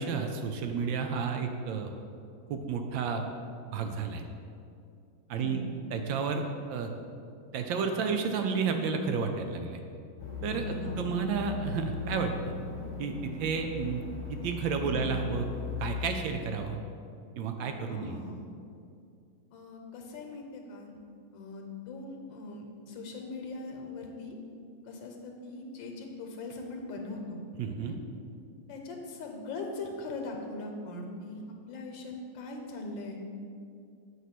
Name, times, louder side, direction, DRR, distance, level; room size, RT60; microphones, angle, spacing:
voice 1, 0.0-1.9 2.5-3.3 3.7-4.2 5.3-5.6 5.9-6.4 6.7-6.9 7.5-9.8 10.4-12.5 13.0-14.0 14.3-15.5 15.8-16.8 17.4-18.2 27.6-27.9, right 5 dB, 75° right, 5 dB, 1.2 m, -31 dB
voice 2, 5.3-5.7 10.6-11.0 14.8-15.1 17.9-18.5 19.5-20.9 21.3-24.4 24.9-27.4 27.9-28.0 28.7-31.4 31.7-33.2, left 2 dB, 70° left, 2 dB, 1.4 m, -41 dB
sound 1, 10.2-16.2, left 6 dB, 35° left, 0.7 m, -38 dB
8.2 x 3.1 x 5.8 m, 2.4 s
omnidirectional pair, 2.3 m